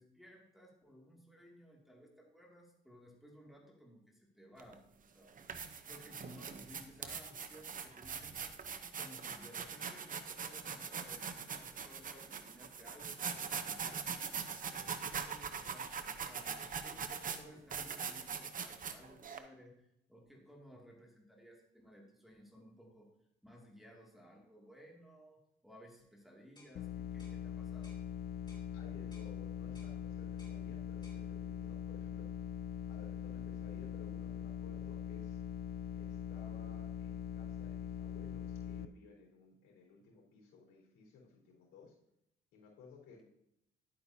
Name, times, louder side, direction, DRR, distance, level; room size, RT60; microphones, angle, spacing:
voice 1, 0.0-4.9 5.1-5.6 5.8-8.5 9.0-13.2 13.6-14.1 14.7-19.8 20.1-23.1 23.4-27.9, equal, ahead, -2 dB, 2.4 m, -58 dB
sound 1, 4.6-4.7 5.3-19.4, right 6 dB, 40° right, 0.9 m, -42 dB
sound 2, 26.6-26.8 27.2-27.4 27.8-28.0 28.5-28.7 29.1-29.3 29.8-30.0 30.4-30.6 31.0-31.2, left 2 dB, 20° left, 2.7 m, -61 dB
sound 3, 26.8-38.9, left 9 dB, 55° left, 0.5 m, -42 dB
voice 2, 28.7-32.3 32.9-35.4 36.0-41.9 42.5-43.2, left 4 dB, 90° left, -2 dB, 3.8 m, -58 dB
11.0 x 8.7 x 2.8 m, 0.80 s
cardioid pair, 90°, 20 cm